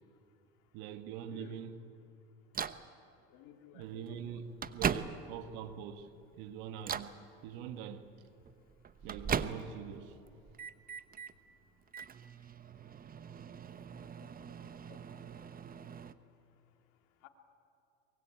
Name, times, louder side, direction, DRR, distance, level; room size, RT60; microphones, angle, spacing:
voice 1, 0.7-1.8 3.7-7.1 7.4-8.1 9.0-10.2, right 8 dB, 75° right, 1.7 m, -44 dB
voice 2, 1.3-1.6 3.3-4.7 11.5-11.6 14.2-15.0 17.2-17.3, left 10 dB, 70° left, 2.8 m, -57 dB
Microwave oven, 2.5-2.9 3.8-3.9 4.4-5.5 6.0-6.3 6.8-7.2 8.4-9.9 10.3-11.3 11.9-16.1, right 7 dB, 30° right, 1.0 m, -39 dB
24.0 x 22.0 x 8.8 m
supercardioid pair, 95°, 31 cm